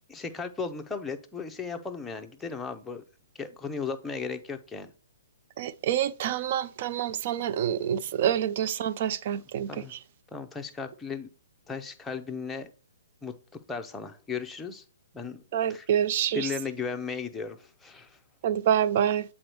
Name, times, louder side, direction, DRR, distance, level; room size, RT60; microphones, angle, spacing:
voice 1, 0.1-3.0 3.4-4.9 9.3-9.4 9.7-9.9 10.3-11.3 11.7-12.7 13.2-13.3 13.7-14.8 15.1-15.4 15.7-15.9 16.3-18.2, left 5 dB, 10° left, 0.7 m, -36 dB
voice 2, 5.6-10.0 15.5-16.5 18.4-19.2, right 9 dB, 45° right, 0.4 m, -27 dB
7.6 x 4.2 x 3.0 m
hypercardioid pair, 135°, 0 cm